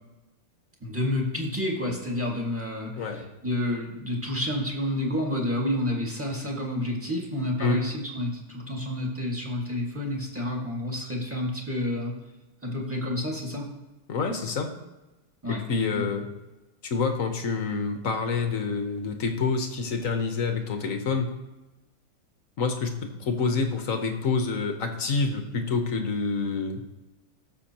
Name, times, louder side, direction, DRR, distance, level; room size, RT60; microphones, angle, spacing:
voice 1, 0.8-12.1 12.6-13.7 15.4-15.6 15.9-16.1, left 1 dB, 5° right, -2 dB, 1.5 m, -29 dB
voice 2, 14.1-14.7 15.5-16.3 16.8-21.3 22.6-26.8, left 4 dB, 55° left, 5 dB, 1.0 m, -27 dB
16.5 x 7.0 x 2.9 m, 1.1 s
omnidirectional pair, 2.4 m